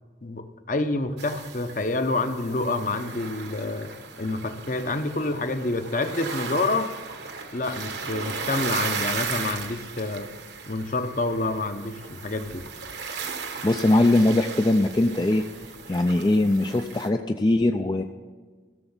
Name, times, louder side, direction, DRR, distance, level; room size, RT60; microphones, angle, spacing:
voice 1, 0.2-3.9 4.2-6.9 7.5-10.3 10.7-12.6, left 2 dB, 45° left, 8 dB, 0.8 m, -28 dB
sound 1, 1.2-17.1, right 5 dB, 65° right, 1.2 m, -36 dB
voice 2, 13.6-15.4 15.9-18.0, left 2 dB, 25° left, 5 dB, 0.4 m, -21 dB
15.5 x 7.0 x 7.2 m, 1.5 s
head